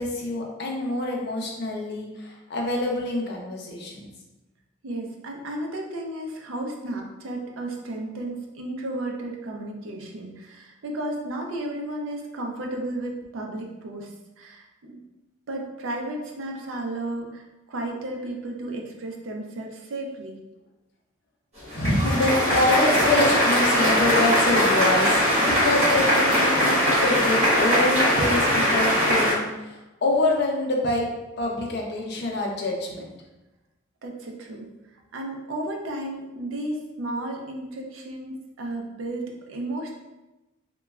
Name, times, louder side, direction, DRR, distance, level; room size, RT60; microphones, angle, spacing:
voice 1, 0.0-4.1 21.7-31.1 31.4-33.1, left 2 dB, 50° left, 0 dB, 0.5 m, -26 dB
voice 2, 4.8-14.1 14.4-15.0 15.5-20.4 34.0-34.7 35.1-39.9, right 1 dB, 70° right, 1 dB, 0.5 m, -33 dB
sound 1, 21.6-29.3, equal, 30° right, 1.0 m, -21 dB
3.0 x 2.2 x 2.3 m, 1.0 s
head